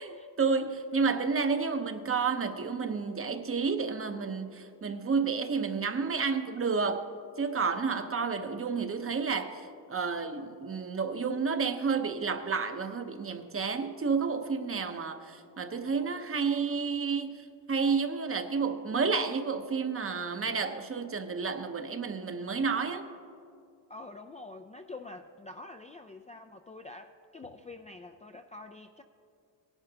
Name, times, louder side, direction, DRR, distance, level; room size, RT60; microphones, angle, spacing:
voice 1, 0.0-7.0 7.4-23.0, right 5 dB, 30° right, 8 dB, 0.8 m, -30 dB
voice 2, 23.9-29.0, left 2 dB, 20° left, 5 dB, 0.3 m, -46 dB
18.0 x 10.5 x 2.8 m, 2.4 s
cardioid pair, 90°, 44 cm